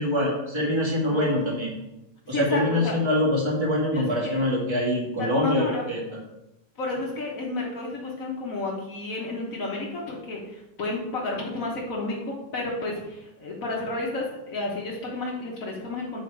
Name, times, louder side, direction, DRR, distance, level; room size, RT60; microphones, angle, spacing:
voice 1, 0.0-1.7 2.3-6.0, left 1 dB, 15° right, -3 dB, 1.1 m, -24 dB
voice 2, 1.0-1.9 2.3-3.0 3.9-4.4 5.2-5.8 6.8-16.2, left 2 dB, 80° left, -2 dB, 0.7 m, -31 dB
7.7 x 4.9 x 4.6 m, 0.91 s
omnidirectional pair, 3.3 m